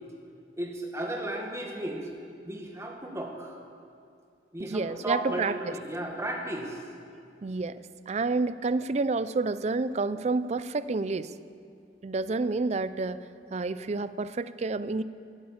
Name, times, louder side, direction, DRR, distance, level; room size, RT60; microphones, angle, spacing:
voice 1, 0.6-2.1 2.4-3.6 4.5-6.8, right 1 dB, 15° right, 0 dB, 1.7 m, -34 dB
voice 2, 4.6-5.7 7.4-11.3 12.0-13.2 13.5-15.0, right 3 dB, 35° right, 15 dB, 0.4 m, -29 dB
15.5 x 8.8 x 7.3 m, 2.4 s
head